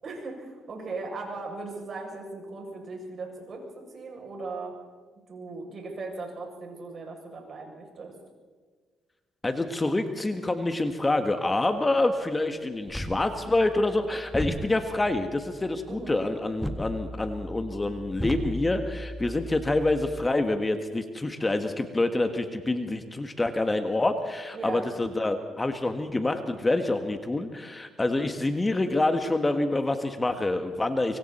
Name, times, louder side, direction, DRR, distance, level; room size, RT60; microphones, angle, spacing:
voice 1, 0.0-4.7 5.3-8.1 15.9-16.2 24.5-24.9, right 3 dB, 50° right, 0 dB, 7.5 m, -38 dB
voice 2, 9.4-31.2, left 2 dB, 20° left, 7 dB, 1.5 m, -27 dB
sound 1, 12.9-20.3, equal, 5° left, 1.7 m, -37 dB
24.5 x 24.5 x 4.4 m, 1.5 s
cardioid pair, 90°, 0 cm